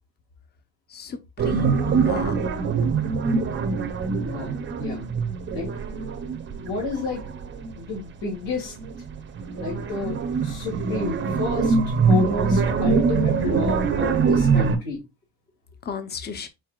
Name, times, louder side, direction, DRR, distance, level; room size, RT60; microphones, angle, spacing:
voice 1, 0.9-2.3 15.8-16.5, left 7 dB, 25° left, 0.6 m, -33 dB
sound 1, 1.4-8.0 8.4-14.8, right 5 dB, 30° right, 0.5 m, -24 dB
voice 2, 4.2-5.0 5.5-5.7 6.6-7.2 7.8-8.8 9.6-11.8 12.1-15.0, left 3 dB, 75° left, 2.5 m, -31 dB
4.6 x 4.4 x 2.3 m
cardioid pair, 145°, 41 cm